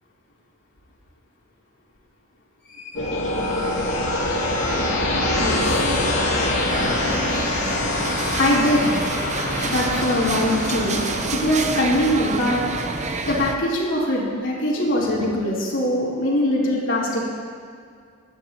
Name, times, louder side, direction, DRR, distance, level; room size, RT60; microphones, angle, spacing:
voice 1, 2.8-3.8 5.4-5.6 8.4-8.9 9.6-11.0 11.3-12.7 13.0-17.3, left 1 dB, 65° left, -5 dB, 3.5 m, -22 dB
sound 1, 2.9-13.7 14.8-15.4, left 1 dB, 85° left, 2.2 m, -25 dB
sound 2, 6.7-13.6, right 3 dB, 35° right, 0.7 m, -29 dB
23.0 x 11.5 x 3.0 m, 2.2 s
head